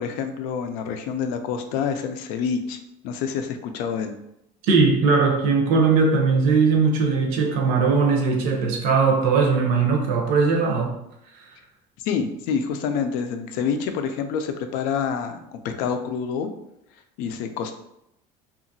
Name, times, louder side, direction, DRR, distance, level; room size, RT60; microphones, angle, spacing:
voice 1, 0.0-2.8 3.0-4.1 12.0-16.5 17.2-17.7, left 6 dB, 75° left, 0.4 m, -27 dB
voice 2, 4.7-10.9, right 4 dB, 75° right, 0.6 m, -19 dB
2.8 x 2.4 x 2.6 m
cardioid pair, 165°, 14 cm